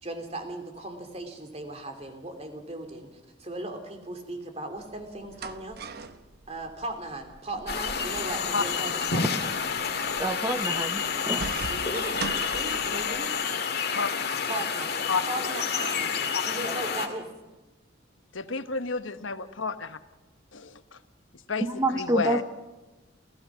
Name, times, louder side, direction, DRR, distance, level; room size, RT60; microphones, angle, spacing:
voice 1, 0.0-3.1 3.4-5.8 6.5-9.6 11.7-13.3 14.4-14.9 15.2-16.2 16.4-17.3, right 2 dB, 35° right, 6 dB, 2.9 m, -37 dB
sound 1, 4.8-13.3, right 4 dB, 55° right, 1.0 m, -41 dB
sound 2, 7.7-17.1, left 6 dB, 55° left, 2.0 m, -29 dB
voice 2, 10.2-11.4 21.6-22.4, right 1 dB, 15° right, 8 dB, 0.9 m, -27 dB
voice 3, 18.3-20.0 20.5-21.0 21.5-22.4, left 4 dB, 85° left, 10 dB, 1.1 m, -31 dB
28.5 x 16.0 x 6.2 m, 1.1 s
head